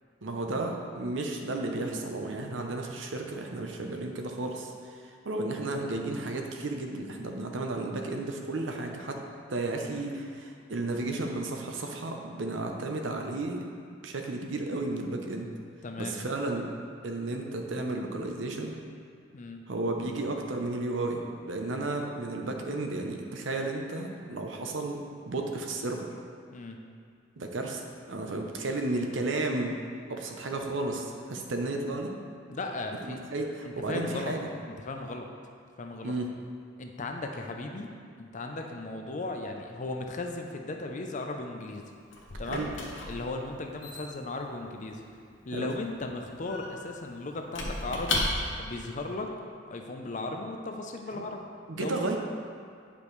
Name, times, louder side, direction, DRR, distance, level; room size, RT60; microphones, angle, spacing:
voice 1, 0.2-9.2 9.5-13.6 14.0-15.5 16.0-16.7 17.0-18.8 19.7-26.1 27.4-27.8 28.1-29.8 30.1-32.1 33.0-34.4 36.0-36.3 42.5-42.7 45.5-45.7 51.1-51.2 51.7-52.2, right 2 dB, 70° right, 2 dB, 0.7 m, -33 dB
voice 2, 15.8-16.2 19.3-19.6 26.5-26.8 32.5-33.2 33.6-34.3 34.6-35.3 35.8-36.1 36.8-37.9 38.2-41.8 42.4-42.7 43.0-45.0 45.5-48.2 48.6-49.3 49.7-51.5 51.8-52.2, left 2 dB, 40° left, 3 dB, 0.6 m, -36 dB
Squeak / Wood, 41.6-48.8, left 2 dB, 70° left, 1.0 m, -36 dB
8.8 x 5.1 x 3.2 m, 2.2 s
head